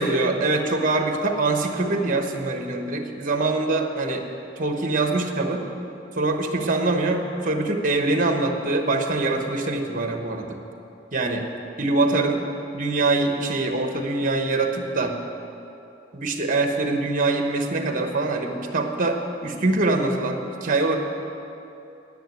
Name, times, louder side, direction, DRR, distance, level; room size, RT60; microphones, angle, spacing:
voice 1, 0.0-4.3 4.6-5.7 6.1-10.6 11.1-11.5 11.8-12.4 12.7-15.1 16.1-21.0, right 2 dB, 45° right, 4 dB, 1.1 m, -24 dB
10.0 x 7.7 x 9.1 m, 2.9 s
head